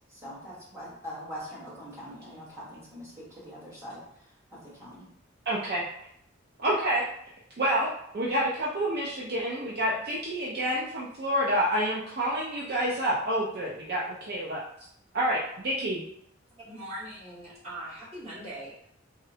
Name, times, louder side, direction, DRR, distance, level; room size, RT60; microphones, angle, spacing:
voice 1, 0.0-4.0 4.5-5.1, equal, 15° right, -9 dB, 1.3 m, -43 dB
voice 2, 5.5-5.8 6.6-7.0 7.6-7.9 8.1-14.6 15.1-16.0, right 1 dB, 50° right, -5 dB, 0.5 m, -28 dB
voice 3, 16.6-18.9, right 1 dB, 30° right, -10 dB, 1.4 m, -41 dB
3.6 x 2.1 x 2.7 m, 0.71 s
head